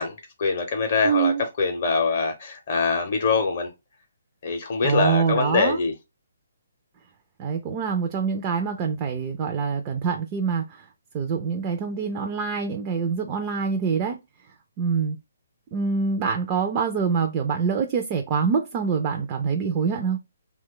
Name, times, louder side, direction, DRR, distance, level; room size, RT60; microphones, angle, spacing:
voice 1, 0.0-3.7 4.4-5.9, left 4 dB, 40° left, 0.6 m, -24 dB
voice 2, 1.0-1.4 4.8-5.8 7.4-10.9 11.1-14.2 14.8-15.2 15.7-20.2, right 5 dB, 20° right, 0.3 m, -25 dB
2.9 x 2.2 x 3.6 m
hypercardioid pair, 170°, 0 cm